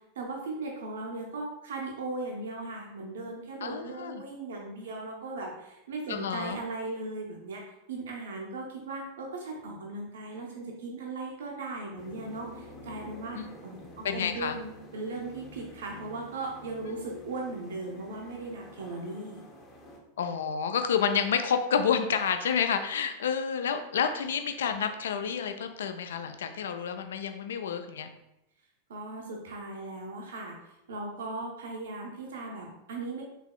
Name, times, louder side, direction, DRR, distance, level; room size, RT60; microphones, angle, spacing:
voice 1, 0.2-19.4 28.9-33.2, right 2 dB, 60° right, 0 dB, 0.6 m, -38 dB
voice 2, 3.6-4.2 6.1-6.6 13.3-13.5 14.0-14.6 20.2-28.1, left 7 dB, 60° left, 8 dB, 0.3 m, -29 dB
sound 1, 12.0-20.0, left 2 dB, 25° left, 0.8 m, -49 dB
4.1 x 3.5 x 2.2 m, 0.89 s
figure-of-eight pair, 90°, 0 cm